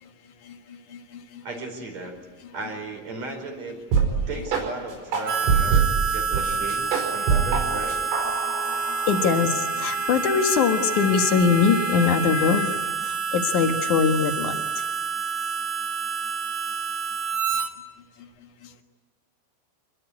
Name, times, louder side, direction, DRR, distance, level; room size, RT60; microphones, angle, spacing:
voice 1, 1.4-2.2 2.5-3.8 4.3-8.0, right 3 dB, 35° right, 5 dB, 5.3 m, -35 dB
sound 1, 3.9-4.1 4.5-4.6 5.1-6.4 6.7-7.6 7.9-9.4, right 6 dB, 90° right, 7.6 m, -23 dB
Harmonica, 5.3-17.7, right 5 dB, 60° right, 2.7 m, -28 dB
Wind instrument woodwind instrument, 7.1-12.8, left 4 dB, 90° left, 9.6 m, -35 dB
voice 2, 9.1-12.7 13.0-14.5, left 6 dB, 60° left, 5 dB, 2.1 m, -22 dB
27.5 x 22.0 x 9.7 m, 1.3 s
omnidirectional pair, 5.7 m